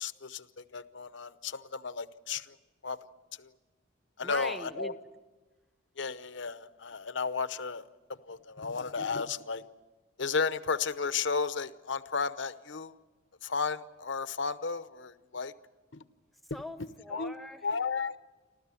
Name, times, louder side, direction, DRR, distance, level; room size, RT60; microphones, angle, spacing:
voice 1, 0.0-2.5 2.8-3.0 3.4-3.5 4.2-4.9 6.0-7.8 8.3-9.6 10.2-12.9 13.4-15.5 15.9-16.0 17.1-17.3 17.6-18.1, left 5 dB, 60° left, 13 dB, 0.8 m, -33 dB
voice 2, 4.2-4.9 16.5-17.7, equal, ahead, 9 dB, 1.0 m, -41 dB
29.0 x 13.5 x 9.8 m, 1.2 s
head